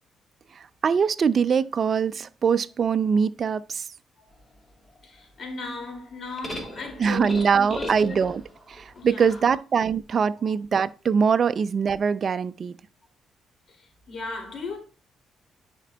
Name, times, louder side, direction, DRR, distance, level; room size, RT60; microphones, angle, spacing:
voice 1, 0.6-3.8 7.0-8.4 8.7-12.7, right 6 dB, 50° right, 0.3 m, -23 dB
sound 1, 4.3-9.6, left 1 dB, 20° left, 1.4 m, -40 dB
voice 2, 5.0-8.4 8.9-9.5 10.4-10.5 13.7-14.8, left 3 dB, 50° left, 2.3 m, -37 dB
10.0 x 5.0 x 2.2 m
cardioid pair, 90°, 0 cm